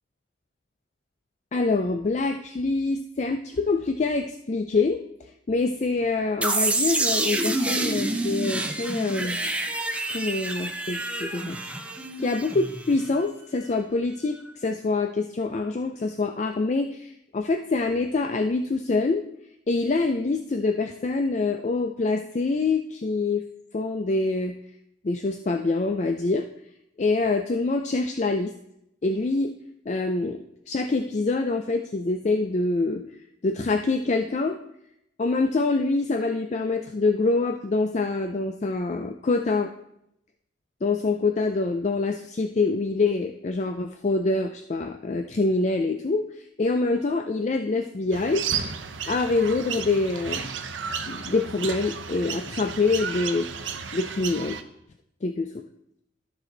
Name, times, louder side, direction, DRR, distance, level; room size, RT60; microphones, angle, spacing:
voice 1, 1.5-5.0 5.5-9.4 10.1-11.6 12.2-19.3 19.7-23.4 23.7-24.5 25.0-26.5 27.0-28.5 29.0-29.5 29.9-30.4 30.7-33.0 33.4-34.6 35.2-39.7 40.8-48.4 49.1-50.5 51.1-53.5 53.9-54.6 55.2-55.6, left 3 dB, 40° left, 6 dB, 0.4 m, -25 dB
sound 1, 6.4-13.2, right 2 dB, 5° right, 0.6 m, -28 dB
sound 2, 48.1-54.6, right 7 dB, 90° right, 0.7 m, -33 dB
12.5 x 6.1 x 3.9 m, 0.78 s
head